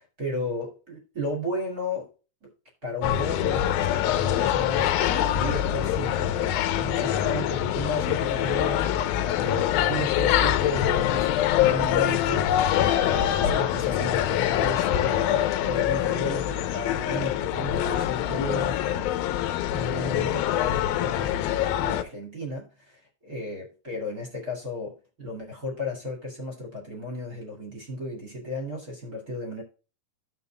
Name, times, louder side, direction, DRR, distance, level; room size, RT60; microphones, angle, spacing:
voice 1, 0.0-2.1 2.4-2.5 2.8-4.9 5.3-11.3 11.6-12.5 13.1-19.1 19.7-21.4 21.8-29.6, left 1 dB, 25° right, 0 dB, 2.5 m, -33 dB
sound 1, 3.0-22.0, left 11 dB, 75° left, 2.2 m, -24 dB
16.0 x 5.7 x 2.3 m, 0.34 s
omnidirectional pair, 4.9 m